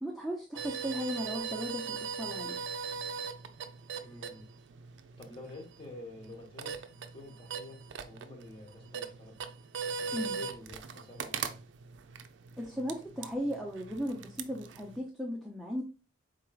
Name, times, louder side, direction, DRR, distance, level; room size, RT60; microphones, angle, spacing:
voice 1, 0.0-2.6 10.1-10.4 12.6-15.8, equal, ahead, 0.4 m, -36 dB
sound 1, 0.6-15.0, right 6 dB, 60° right, 0.4 m, -40 dB
voice 2, 4.0-4.5 5.2-6.8 7.1-9.4 10.0-11.7, left 2 dB, 25° left, 1.2 m, -49 dB
4.5 x 3.8 x 2.3 m
head